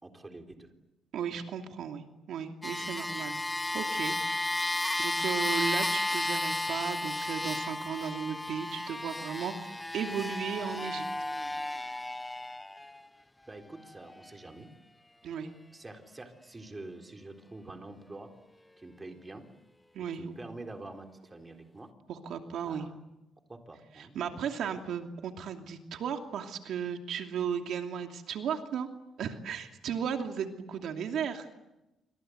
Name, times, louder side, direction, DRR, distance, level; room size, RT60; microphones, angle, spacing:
voice 1, 0.0-0.7 13.5-14.7 15.7-18.3 18.8-19.4 20.1-21.9 22.7-23.0 23.5-24.2, right 2 dB, 20° right, 4 dB, 3.8 m, -46 dB
voice 2, 1.1-3.4 3.7-4.2 5.0-11.0 15.2-15.5 19.9-20.3 22.1-22.9 24.0-28.9 29.2-31.5, right 7 dB, 70° right, 4 dB, 2.8 m, -35 dB
sound 1, 2.6-13.1 13.8-13.9, left 1 dB, 10° left, 0.9 m, -33 dB
28.0 x 25.0 x 8.0 m, 0.95 s
cardioid pair, 115°, 0 cm